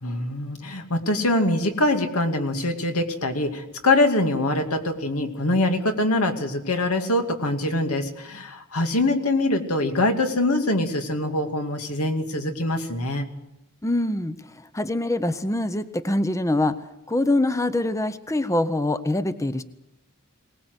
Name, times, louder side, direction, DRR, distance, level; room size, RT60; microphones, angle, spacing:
voice 1, 0.0-13.3, left 2 dB, 80° left, 6 dB, 2.5 m, -24 dB
voice 2, 13.8-16.8 17.1-19.6, left 1 dB, 15° left, 12 dB, 0.7 m, -24 dB
22.0 x 19.0 x 8.0 m, 0.88 s
head